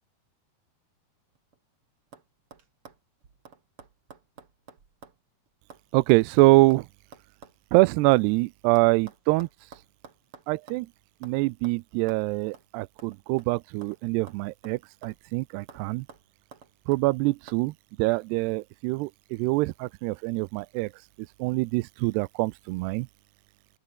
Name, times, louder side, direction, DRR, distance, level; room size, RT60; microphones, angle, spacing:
sound 1, 1.4-1.7 2.1-2.3 2.5-5.2 5.5-8.3 8.8-10.9 11.2-11.4 11.6-11.8 12.1-12.2 12.5-12.7 13.0-14.0 14.3-15.3 15.7-15.8 16.1-17.0 17.5-17.6, right 6 dB, 35° right, 3.2 m, -50 dB
voice 1, 5.9-6.9 7.7-9.5 10.5-10.9 11.2-16.1 16.9-17.7 18.0-20.9 21.4-23.1, right 22 dB, 85° right, 2.7 m, -24 dB
open air
omnidirectional pair, 4.7 m